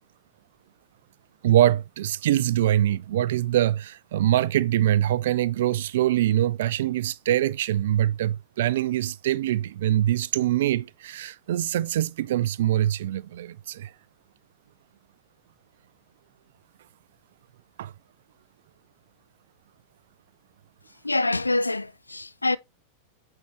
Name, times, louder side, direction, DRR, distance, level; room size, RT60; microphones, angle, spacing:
voice 1, 1.4-13.9 17.8-17.9, right 12 dB, 55° right, 0.3 m, -24 dB
voice 2, 21.0-22.6, left 2 dB, 80° left, 0.3 m, -25 dB
8.4 x 3.7 x 3.1 m
figure-of-eight pair, 90°, 0 cm